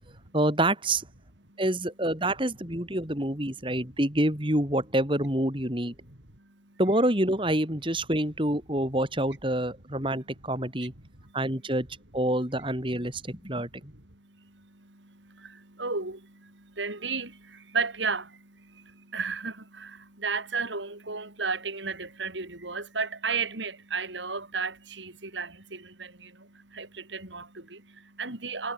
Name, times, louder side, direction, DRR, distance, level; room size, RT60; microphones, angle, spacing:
voice 1, 0.3-1.0 1.6-5.9 6.8-10.9 11.3-11.9 12.1-13.9, right 1 dB, 30° right, 4.2 m, -27 dB
voice 2, 3.6-4.0 6.0-6.8 11.0-11.4 13.4-28.7, right 4 dB, 80° right, 5.4 m, -35 dB
head